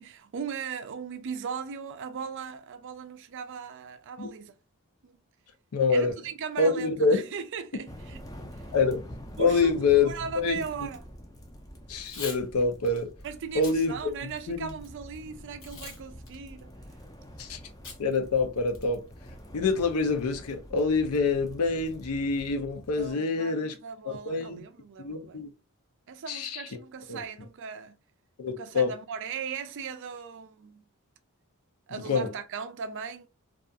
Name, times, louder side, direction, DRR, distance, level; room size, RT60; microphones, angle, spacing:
voice 1, 0.0-4.5 5.0-5.2 5.9-8.2 8.5-8.7 9.4-11.1 13.2-16.7 23.0-25.4 26.1-28.0 28.5-30.8 31.9-33.3, right 6 dB, 55° right, 0.4 m, -38 dB
voice 2, 5.7-6.1 6.6-7.2 8.7-10.1 10.4-10.6 11.9-13.1 13.5-13.9 14.5-14.7 17.4-17.6 18.0-19.0 19.5-23.7 24.1-24.6 25.0-25.5 26.3-26.6 27.1-27.2 28.4-28.9 31.9-32.3, left 4 dB, 80° left, 0.5 m, -26 dB
sound 1, 7.9-23.1, equal, 15° left, 0.5 m, -46 dB
Packing tape duct tape / Tearing, 11.9-12.4 12.9-13.0 13.5-13.8 14.3-14.9 15.6-16.0 16.3-16.4 17.8-18.0 18.4-18.5 18.7-19.1, left 4 dB, 60° left, 0.9 m, -41 dB
2.3 x 2.3 x 2.6 m
head